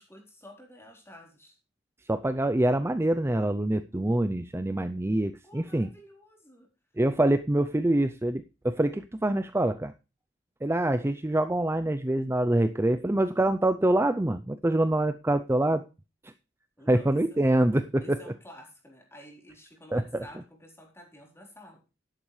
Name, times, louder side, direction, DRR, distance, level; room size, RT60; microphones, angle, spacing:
voice 1, 0.0-1.6 5.4-6.7 16.8-17.4 18.0-21.8, equal, 15° left, 4.1 m, -51 dB
voice 2, 2.1-5.9 7.0-9.9 10.6-15.8 16.9-18.2 19.9-20.2, right 1 dB, 15° right, 0.5 m, -25 dB
12.0 x 11.5 x 3.2 m
head